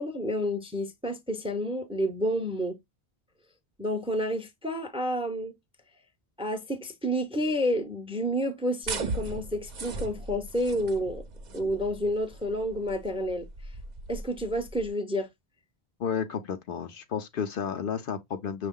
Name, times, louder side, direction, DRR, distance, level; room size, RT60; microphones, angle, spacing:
voice 1, 0.0-2.8 3.8-5.5 6.4-11.2 11.5-13.4 14.1-15.3, equal, 5° right, 0.5 m, -30 dB
sound 1, 8.8-14.9, right 3 dB, 50° right, 0.7 m, -38 dB
voice 2, 16.0-18.7, left 7 dB, 60° left, 0.7 m, -32 dB
6.1 x 2.3 x 3.6 m
omnidirectional pair, 1.1 m